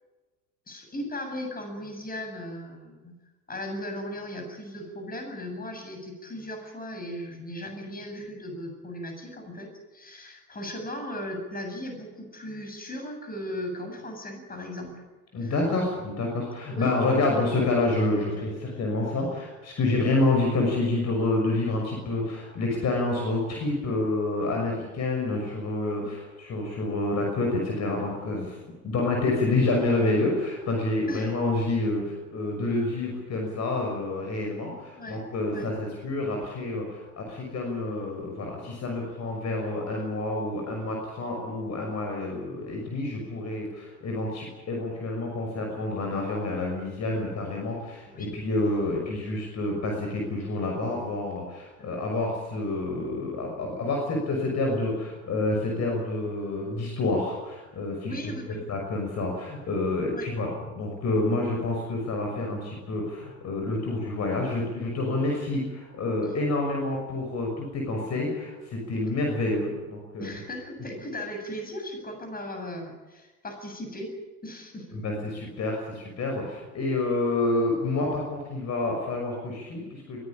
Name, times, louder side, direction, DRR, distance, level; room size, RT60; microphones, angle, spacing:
voice 1, 0.7-3.1 3.5-15.0 15.4-15.5 15.8-16.1 16.6-16.9 26.0-26.1 31.1-31.3 35.0-35.2 35.5-35.7 48.1-48.3 51.8-52.0 58.0-58.6 60.1-60.3 70.2-74.1 74.4-75.0, left 1 dB, 20° left, 4 dB, 7.8 m, -37 dB
voice 2, 15.3-28.6 28.8-58.3 58.7-70.4 74.9-80.2, left 2 dB, 35° left, 1 dB, 6.1 m, -28 dB
22.5 x 17.5 x 8.8 m, 1.2 s
figure-of-eight pair, 70°, 43 cm